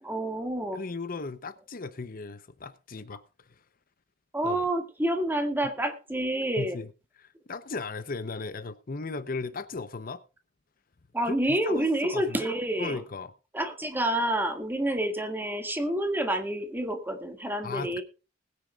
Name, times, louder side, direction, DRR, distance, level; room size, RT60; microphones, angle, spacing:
voice 1, 0.0-0.8 4.3-6.8 11.1-13.0 13.5-18.0, right 1 dB, 10° right, 2.0 m, -28 dB
voice 2, 0.7-3.2 4.4-4.7 6.6-6.9 7.2-10.2 11.2-12.5 12.8-13.3 17.6-18.0, left 3 dB, 50° left, 0.8 m, -36 dB
20.5 x 9.6 x 2.4 m
head